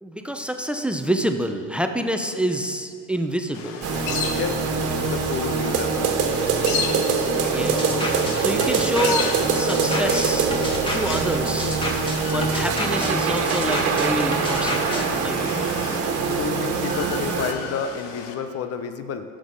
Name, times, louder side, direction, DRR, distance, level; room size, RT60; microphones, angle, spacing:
voice 1, 0.0-3.9 7.0-7.2 7.5-7.9 8.4-10.5 10.9-11.8 12.3-15.8, equal, 5° right, 6 dB, 0.8 m, -27 dB
sound 1, 3.5-18.3, left 6 dB, 75° left, 1.3 m, -35 dB
sound 2, 3.8-17.5, right 5 dB, 50° right, 1.6 m, -24 dB
voice 2, 5.1-6.0 16.3-19.2, left 6 dB, 50° left, 9 dB, 1.0 m, -30 dB
sound 3, 7.7-15.1, left 1 dB, 15° left, 2.3 m, -30 dB
15.0 x 6.5 x 5.5 m, 2.2 s
supercardioid pair, 80°, 30 cm